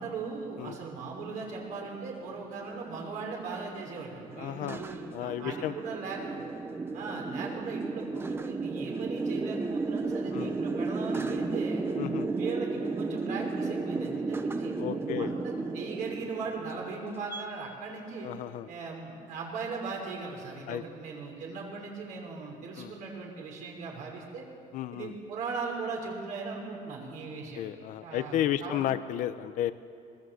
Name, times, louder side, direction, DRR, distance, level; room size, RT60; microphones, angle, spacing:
voice 1, 0.0-6.4 6.9-11.8 12.3-18.3 18.7-24.4 24.9-27.6 28.0-28.8, right 4 dB, 60° right, -1 dB, 6.2 m, -38 dB
sound 1, 1.1-17.4, right 3 dB, 15° right, 1.0 m, -34 dB
voice 2, 4.4-5.8 10.3-10.6 12.0-12.4 14.8-15.3 18.2-18.7 20.7-20.8 22.8-22.9 24.7-25.1 27.5-29.7, left 12 dB, 60° left, 12 dB, 1.0 m, -33 dB
25.0 x 22.0 x 8.0 m, 2.4 s
cardioid pair, 165°, 15 cm